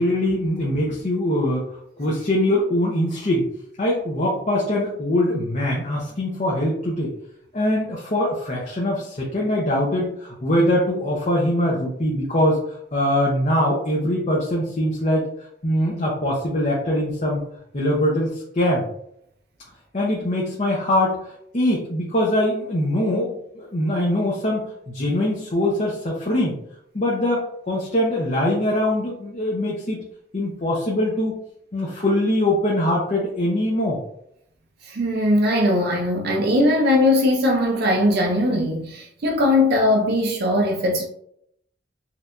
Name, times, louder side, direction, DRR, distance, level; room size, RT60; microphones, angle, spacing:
voice 1, 0.0-1.6 2.0-3.5 3.8-7.1 7.5-15.2 15.6-17.4 17.7-18.8 19.9-26.6 26.9-30.0 30.3-31.4 31.7-34.0, left 1 dB, 40° left, 0.8 m, -22 dB
voice 2, 34.9-41.1, left 1 dB, 60° right, 0.5 m, -20 dB
4.4 x 2.7 x 2.5 m
head